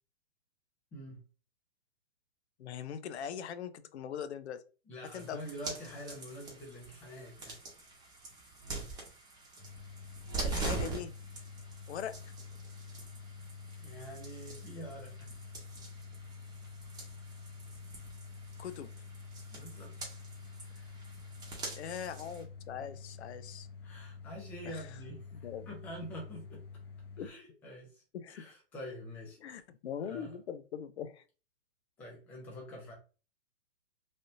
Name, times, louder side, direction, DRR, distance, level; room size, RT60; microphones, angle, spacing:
voice 1, 0.9-1.2 4.9-7.6 13.8-15.4 19.5-19.9 20.7-21.2 23.8-26.6 27.2-29.6 30.1-30.4 32.0-32.9, equal, 5° left, -2 dB, 0.3 m, -46 dB
voice 2, 2.6-4.6 5.1-5.4 10.4-11.1 11.9-12.1 18.6-18.9 21.7-23.7 24.7-24.9 25.3-25.7 27.2-27.3 28.1-28.5 29.4-31.2, left 8 dB, 75° left, 12 dB, 0.6 m, -41 dB
sound 1, 5.0-22.4, right 3 dB, 10° right, 0.8 m, -44 dB
sound 2, 9.6-27.3, left 5 dB, 25° left, 0.7 m, -48 dB
3.3 x 2.6 x 2.5 m, 0.35 s
hypercardioid pair, 145°, 33 cm